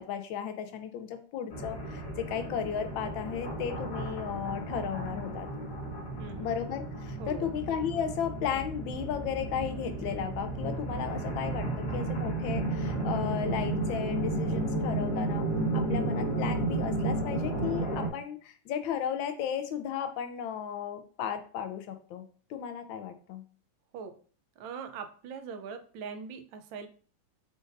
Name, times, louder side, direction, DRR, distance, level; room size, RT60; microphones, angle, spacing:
voice 1, 0.0-5.5 6.4-15.5 15.7-22.2 22.5-23.4, left 8 dB, 80° left, 8 dB, 1.4 m, -35 dB
sound 1, 1.5-18.1, right 2 dB, 50° left, 1.4 m, -33 dB
voice 2, 6.2-6.5 7.2-7.5 23.9-24.1 24.6-26.9, right 6 dB, 80° right, 7 dB, 1.3 m, -41 dB
5.1 x 3.9 x 2.5 m, 0.42 s
omnidirectional pair, 2.1 m